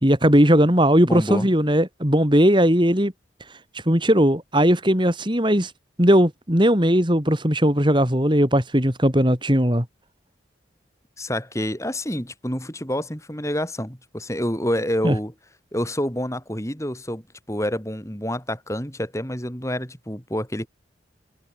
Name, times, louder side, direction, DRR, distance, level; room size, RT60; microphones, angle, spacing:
voice 1, 0.0-3.1 3.9-5.7 6.0-9.8 15.0-15.1, equal, 25° right, 4.0 m, -18 dB
voice 2, 1.0-1.5 11.2-15.3 15.7-17.2 17.5-20.7, equal, 15° left, 6.0 m, -28 dB
head